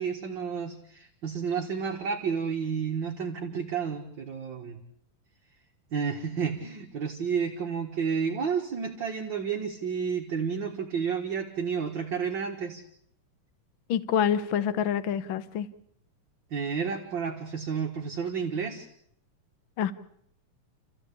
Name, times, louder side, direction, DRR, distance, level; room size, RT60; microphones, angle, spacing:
voice 1, 0.0-4.8 5.9-12.8 16.5-18.9, right 6 dB, 40° right, 2 dB, 1.9 m, -31 dB
voice 2, 13.9-15.7 19.8-19.9, left 8 dB, 70° left, 13 dB, 1.1 m, -26 dB
29.5 x 15.0 x 8.5 m, 0.70 s
omnidirectional pair, 3.9 m